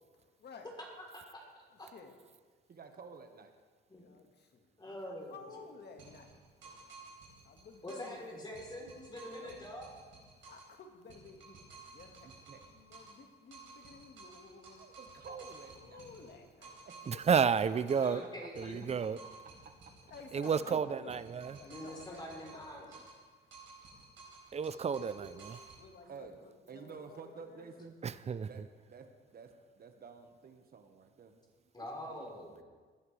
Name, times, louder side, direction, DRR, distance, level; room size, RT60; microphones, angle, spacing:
voice 1, 0.2-0.7 1.7-2.2 4.0-6.3 7.4-8.4 8.8-8.9 9.3-9.5 10.5-11.6 11.8-12.4 12.7-14.9 15.2-15.3 15.8-16.7 17.4-17.5 18.0-18.3 20.1-21.2 21.5-22.7 24.9-25.2 25.8-27.8, left 4 dB, 55° left, 4 dB, 1.8 m, -54 dB
voice 2, 1.0-1.4 1.8-1.9 3.9-4.0 4.8-5.4 7.8-9.9 18.0-19.0 21.6-23.0 31.7-32.6, left 1 dB, 20° left, -1 dB, 3.6 m, -45 dB
voice 3, 2.7-3.5 12.2-12.6 14.8-16.1 16.8-18.5 19.6-19.7 25.2-25.4 26.0-26.4 26.7-28.0 28.5-31.3 31.8-32.5, right 5 dB, 50° right, 6 dB, 1.5 m, -51 dB
sound 1, 6.0-8.2 8.6-10.8 11.1-13.3 13.5-18.2 18.6-20.8 21.1-23.2 23.5-25.8, right 3 dB, 75° right, 4.6 m, -54 dB
voice 4, 17.1-18.2 18.6-19.2 20.3-21.5 24.5-25.1 28.0-28.5, right 6 dB, 35° right, 15 dB, 0.5 m, -30 dB
20.0 x 11.0 x 3.4 m, 1.5 s
cardioid pair, 90°, 20 cm